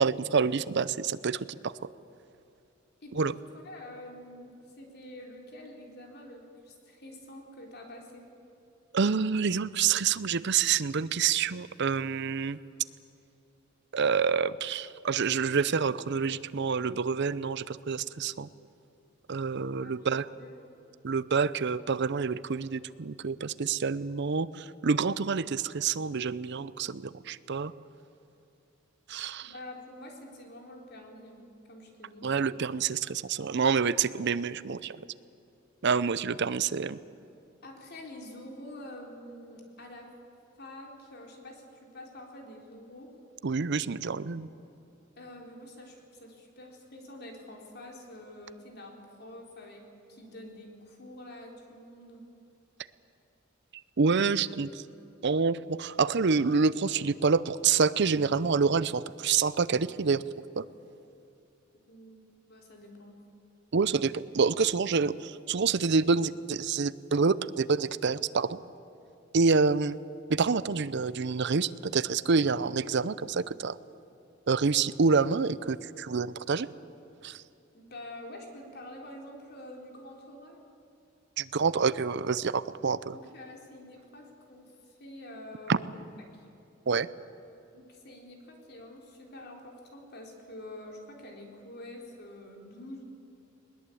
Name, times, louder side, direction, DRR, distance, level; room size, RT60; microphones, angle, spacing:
voice 1, 0.0-1.7 3.2-3.3 8.9-12.6 13.9-18.5 19.3-20.3 21.0-27.7 29.1-29.5 32.2-35.0 35.8-37.0 43.4-44.5 54.0-54.7 55.2-60.2 60.6-60.7 63.7-68.6 69.3-70.0 70.3-73.8 74.5-76.7 77.2-77.4 81.4-83.2 85.7-85.8 86.9-87.1, right 5 dB, 60° right, 17 dB, 0.6 m, -27 dB
voice 2, 3.0-3.3 3.6-8.3 19.8-20.7 29.4-32.3 37.6-40.1 40.6-43.1 45.2-52.3 61.9-63.2 77.7-80.6 83.1-86.5 87.7-93.0, left 1 dB, 55° left, 1 dB, 3.7 m, -47 dB
21.0 x 20.5 x 8.5 m, 2.7 s
head